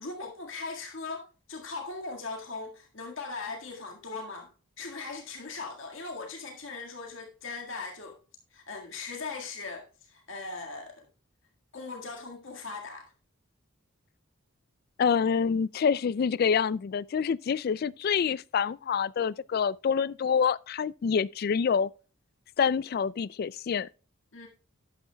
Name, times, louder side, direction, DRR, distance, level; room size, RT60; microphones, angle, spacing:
voice 1, 0.0-4.5 4.8-8.2 8.5-11.1 11.7-13.1 24.3-24.5, left 3 dB, 65° left, 1.9 m, -39 dB
voice 2, 15.0-21.9 22.6-23.9, left 6 dB, 45° left, 0.3 m, -27 dB
11.5 x 9.3 x 2.3 m
head